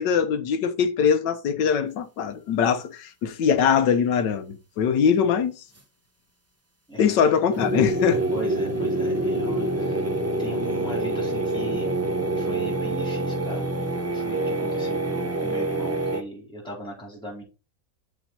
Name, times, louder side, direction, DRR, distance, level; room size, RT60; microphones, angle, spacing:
voice 1, 0.0-5.5 7.0-8.2, left 7 dB, 75° left, 1.5 m, -22 dB
voice 2, 6.9-7.3 8.3-10.0 10.4-11.9 12.4-13.6 14.1-17.4, right 1 dB, ahead, 3.9 m, -37 dB
sound 1, 7.5-16.2, right 2 dB, 25° right, 0.3 m, -26 dB
7.4 x 5.7 x 4.2 m
omnidirectional pair, 1.9 m